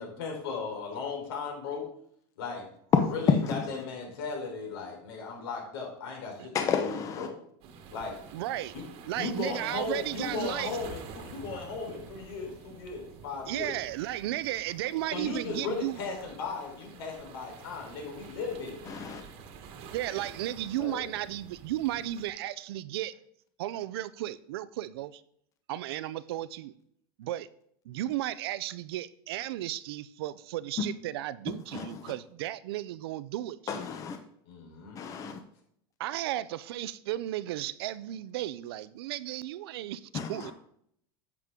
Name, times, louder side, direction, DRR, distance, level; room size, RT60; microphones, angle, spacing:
voice 1, 0.0-1.9 2.4-2.7 3.1-7.3 7.9-8.2 8.7-8.8 9.1-13.8 15.1-18.8 20.8-21.0 34.5-35.0, left 4 dB, 80° left, 4.1 m, -36 dB
voice 2, 2.9-3.6 6.5-7.3 18.9-19.2 31.5-32.1 33.7-34.2 35.0-35.4 40.1-40.5, left 6 dB, 25° left, 0.8 m, -29 dB
sound 1, 7.6-22.3, right 6 dB, 50° right, 1.4 m, -48 dB
voice 3, 8.3-8.7 9.1-10.8 13.5-16.0 19.9-23.1 23.6-25.2 25.7-26.7 27.2-27.5 27.8-33.8 36.0-40.5, right 14 dB, 85° right, 0.6 m, -34 dB
10.5 x 7.6 x 3.7 m
supercardioid pair, 160°, 13 cm